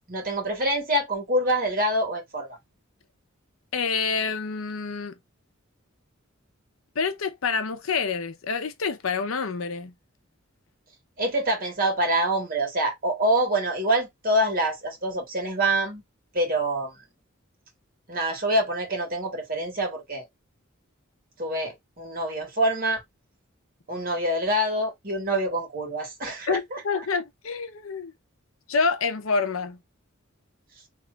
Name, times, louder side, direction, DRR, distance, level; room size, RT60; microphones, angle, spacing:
voice 1, 0.1-2.6 11.2-16.0 16.3-16.9 18.1-20.2 21.4-23.0 23.9-26.8, right 1 dB, 45° right, 1.5 m, -26 dB
voice 2, 3.7-5.2 7.0-9.9 26.5-28.1 28.7-29.8, left 5 dB, 80° left, 0.7 m, -27 dB
3.0 x 2.5 x 3.2 m
head